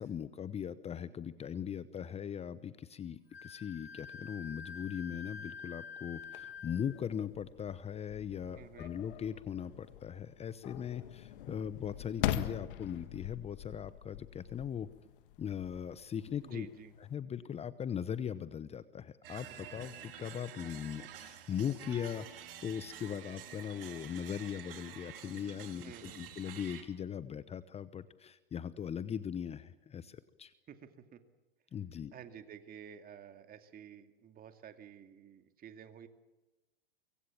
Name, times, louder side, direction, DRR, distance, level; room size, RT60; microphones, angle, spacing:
voice 1, 0.0-14.9 15.4-16.7 17.1-30.5 31.7-32.1, left 8 dB, 20° left, 15 dB, 0.9 m, -39 dB
Wind instrument woodwind instrument, 3.3-7.0, left 5 dB, 85° left, 1.2 m, -47 dB
sound 1, 6.2-17.1, left 12 dB, 60° left, 1.8 m, -43 dB
voice 2, 8.5-8.9 16.4-16.9 25.8-26.3 30.7-31.2 32.1-36.1, right 8 dB, 30° right, 7 dB, 2.5 m, -51 dB
sound 2, 19.2-26.8, right 9 dB, 65° right, 3.2 m, -49 dB
25.0 x 23.5 x 7.3 m, 1.1 s
hypercardioid pair, 95°, 30 cm